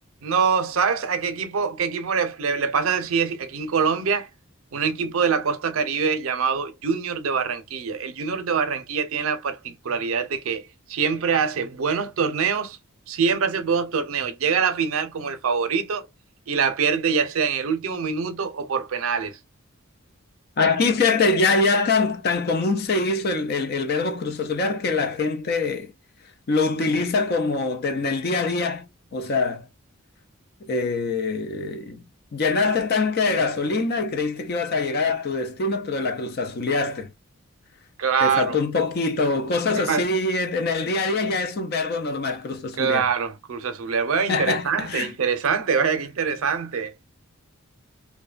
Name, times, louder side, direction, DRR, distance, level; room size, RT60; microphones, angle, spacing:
voice 1, 0.2-4.3 4.7-12.8 13.1-16.1 16.5-19.4 38.0-38.6 39.7-40.1 42.8-46.9, right 6 dB, 70° right, 0.5 m, -24 dB
voice 2, 20.6-25.9 26.5-28.8 29.1-29.7 30.6-32.0 32.3-37.1 38.2-43.0 44.3-45.1, left 3 dB, 45° left, 0.4 m, -24 dB
2.5 x 2.2 x 2.3 m
head